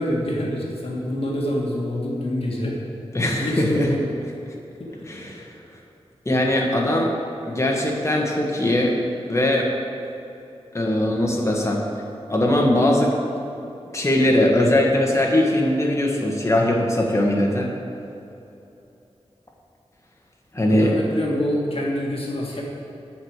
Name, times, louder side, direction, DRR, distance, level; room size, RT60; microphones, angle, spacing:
voice 1, 0.0-2.8 3.2-4.2 4.8-4.9 20.7-22.6, left 1 dB, 60° left, -3 dB, 1.7 m, -26 dB
voice 2, 3.1-3.9 5.1-5.5 6.2-7.1 7.5-9.0 9.3-9.7 10.7-11.8 12.3-13.1 13.9-17.7 20.5-21.0, left 1 dB, 25° left, -1 dB, 1.6 m, -20 dB
7.9 x 6.2 x 8.1 m, 2.8 s
wide cardioid pair, 90°, 11 cm